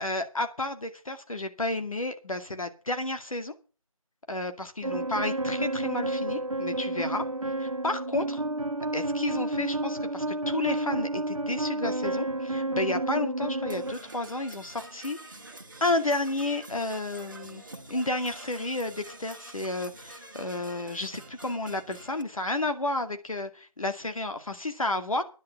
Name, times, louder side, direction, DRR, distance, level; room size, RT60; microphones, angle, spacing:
voice 1, 0.0-3.5 4.3-7.2 7.6-8.4 8.9-15.4 15.8-25.2, left 2 dB, 70° left, 7 dB, 2.2 m, -31 dB
sound 1, 4.8-13.9, right 2 dB, 70° right, 1.4 m, -30 dB
Percussion / Brass instrument, 13.7-22.2, right 2 dB, 35° right, 1.6 m, -46 dB
10.5 x 6.8 x 9.0 m, 0.35 s
figure-of-eight pair, 180°, 18 cm